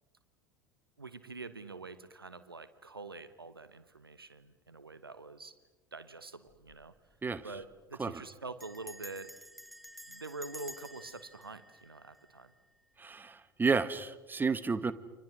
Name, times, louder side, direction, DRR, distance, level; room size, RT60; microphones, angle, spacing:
voice 1, 1.0-5.5 5.9-6.9 7.4-9.3 10.1-12.5, right 3 dB, 85° right, 13 dB, 1.2 m, -46 dB
Bell, 6.5-6.8 7.1-7.2 7.4-7.8 8.6-12.7, equal, ahead, 1.4 m, -51 dB
voice 2, 13.0-14.9, right 4 dB, 15° right, 14 dB, 1.4 m, -31 dB
29.5 x 25.5 x 6.2 m, 1.2 s
figure-of-eight pair, 70°, 12 cm